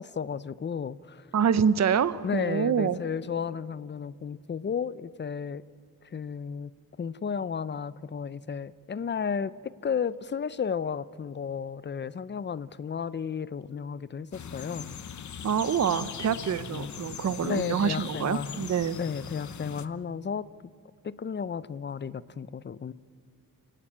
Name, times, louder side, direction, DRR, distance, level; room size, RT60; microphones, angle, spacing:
voice 1, 0.0-1.3 2.2-5.6 6.1-14.9 16.7-16.9 17.4-18.7 19.0-20.5 21.0-22.9, left 6 dB, 30° left, 18 dB, 0.5 m, -33 dB
voice 2, 1.3-3.0 15.4-19.0, right 7 dB, 50° right, 15 dB, 0.7 m, -26 dB
sound 1, 14.3-19.9, left 7 dB, 55° left, 0.9 m, -40 dB
29.0 x 17.5 x 8.9 m, 2.3 s
wide cardioid pair, 145°, 35 cm